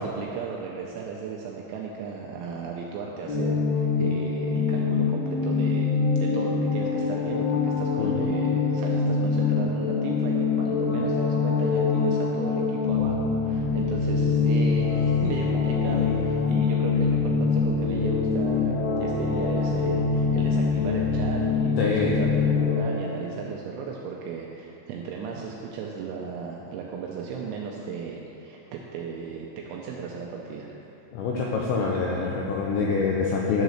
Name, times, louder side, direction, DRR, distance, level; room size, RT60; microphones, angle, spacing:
voice 1, 0.0-5.9 6.2-30.7, right 6 dB, 85° right, -1 dB, 2.7 m, -35 dB
sound 1, 3.3-22.8, left 5 dB, 70° left, 2.6 m, -24 dB
voice 2, 21.8-22.1 31.1-33.6, left 4 dB, 90° left, -2 dB, 2.5 m, -25 dB
10.5 x 4.0 x 6.4 m, 3.0 s
omnidirectional pair, 5.9 m